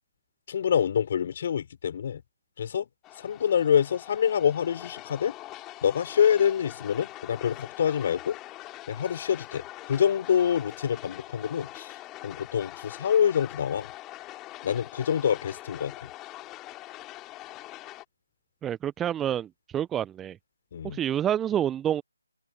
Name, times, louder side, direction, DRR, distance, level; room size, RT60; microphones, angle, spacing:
voice 1, 0.5-2.2 2.6-2.9 3.2-5.3 5.8-8.4 8.9-11.9 12.2-13.9 14.6-16.1 20.7-21.0, left 8 dB, 35° left, 4.2 m, -26 dB
sound 1, 3.0-18.0, left 17 dB, 10° left, 2.8 m, -43 dB
voice 2, 18.6-20.4 20.8-22.0, right 10 dB, 10° right, 0.8 m, -28 dB
open air
figure-of-eight pair, 150°, 0 cm